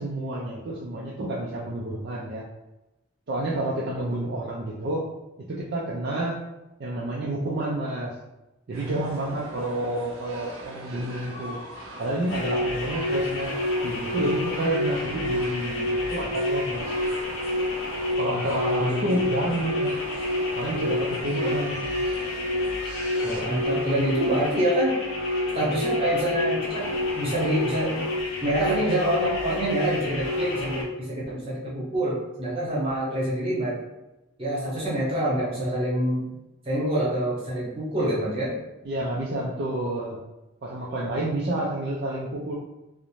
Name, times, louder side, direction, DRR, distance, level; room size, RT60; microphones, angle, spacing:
voice 1, 0.0-2.5 3.3-5.0 5.5-6.4 6.8-8.1 8.7-11.6 12.0-13.5 13.8-17.0 18.2-20.0 20.6-21.9 38.8-40.2 40.6-42.5, right 1 dB, 50° right, -4 dB, 0.3 m, -29 dB
sound 1, 8.7-23.4, right 2 dB, 75° right, 0.7 m, -41 dB
sound 2, 12.3-30.8, left 2 dB, 70° left, 0.5 m, -28 dB
voice 2, 18.8-19.2 21.4-21.5 23.2-25.0 25.5-28.0 28.4-33.8 34.4-36.3 36.6-38.6, right 1 dB, 25° right, -7 dB, 0.9 m, -26 dB
2.5 x 2.0 x 3.0 m, 0.98 s
head